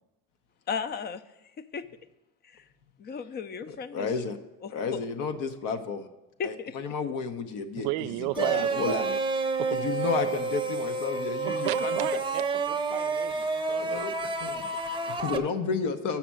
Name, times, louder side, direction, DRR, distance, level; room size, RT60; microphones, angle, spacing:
voice 1, 0.7-1.2 1.6-1.8 2.4-2.6 3.0-4.1 4.6-5.0 6.4-6.8, left 6 dB, 30° left, 14 dB, 0.5 m, -35 dB
voice 2, 3.7-4.4 4.7-6.1 6.4-9.1 9.7-12.0 13.7-16.2, left 5 dB, 70° left, 7 dB, 0.9 m, -32 dB
voice 3, 7.8-9.2 9.6-9.7 11.4-14.3, right 17 dB, 85° right, 14 dB, 0.5 m, -33 dB
sound 1, 8.3-15.4, right 3 dB, 15° right, 0.8 m, -29 dB
7.0 x 5.9 x 7.5 m, 0.99 s
cardioid pair, 115°, 33 cm